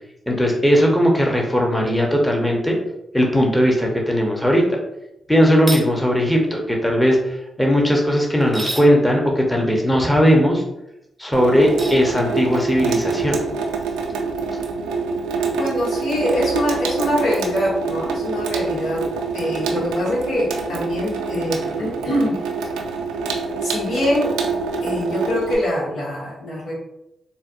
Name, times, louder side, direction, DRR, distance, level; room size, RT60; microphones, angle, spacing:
voice 1, 0.3-2.8 3.1-4.6 5.3-10.6 11.2-13.4, equal, 5° left, 0 dB, 0.9 m, -18 dB
sound 1, 5.6-5.9 8.4-8.9 11.7-12.0, right 2 dB, 25° right, 0.6 m, -29 dB
Water tap faucet / Sink (filling or washing), 11.3-25.5, right 4 dB, 85° right, 0.3 m, -25 dB
voice 2, 15.6-19.0 19.3-22.4 23.6-24.3 24.8-26.7, left 1 dB, 75° left, -6 dB, 1.2 m, -24 dB
3.9 x 2.2 x 2.6 m, 0.87 s
hypercardioid pair, 40°, 0 cm